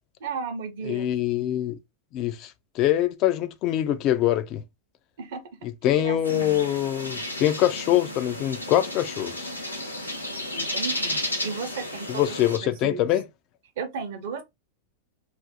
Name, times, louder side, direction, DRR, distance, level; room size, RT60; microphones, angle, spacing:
voice 1, 0.2-1.1 5.2-5.4 5.8-6.6 10.5-13.1 13.8-14.4, right 5 dB, 55° right, 0.6 m, -34 dB
voice 2, 0.9-1.8 2.1-2.5 2.8-4.6 5.8-9.5 12.1-13.2, left 12 dB, 40° left, 0.3 m, -24 dB
sound 1, 6.2-12.6, left 1 dB, 85° left, 0.6 m, -33 dB
2.4 x 2.0 x 2.8 m
figure-of-eight pair, 90°, 0 cm